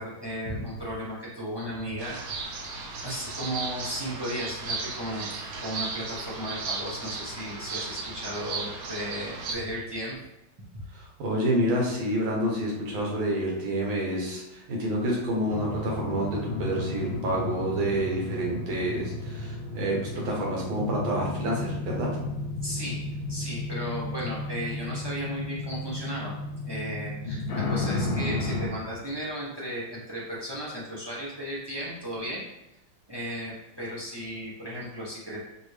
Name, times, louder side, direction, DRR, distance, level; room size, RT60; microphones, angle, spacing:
voice 1, 0.0-2.2 3.0-5.3 5.6-10.2 10.6-10.8 22.6-23.0 23.3-26.3 26.6-32.4 33.1-35.4, equal, 30° right, -7 dB, 0.4 m, -35 dB
sound 1, 2.0-9.5, right 4 dB, 65° right, 0.9 m, -35 dB
voice 2, 10.9-22.1, right 1 dB, 80° right, -2 dB, 1.8 m, -28 dB
sound 2, 15.5-28.7, left 2 dB, 85° left, 1.5 m, -33 dB
5.2 x 2.6 x 3.2 m, 0.91 s
omnidirectional pair, 2.1 m